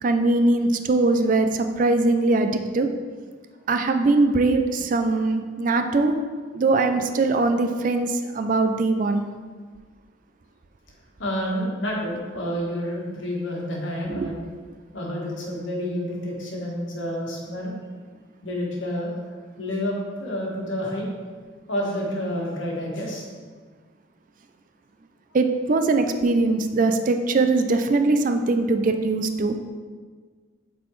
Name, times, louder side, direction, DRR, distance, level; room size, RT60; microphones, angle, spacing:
voice 1, 0.0-2.9 3.7-6.1 6.5-9.2 14.1-14.3 25.3-29.6, right 3 dB, 45° right, 7 dB, 0.4 m, -21 dB
voice 2, 11.2-14.4 14.9-17.7 18.4-19.1 19.6-21.1 21.7-23.2, equal, 85° left, -2 dB, 1.4 m, -29 dB
8.2 x 4.1 x 3.1 m, 1.5 s
head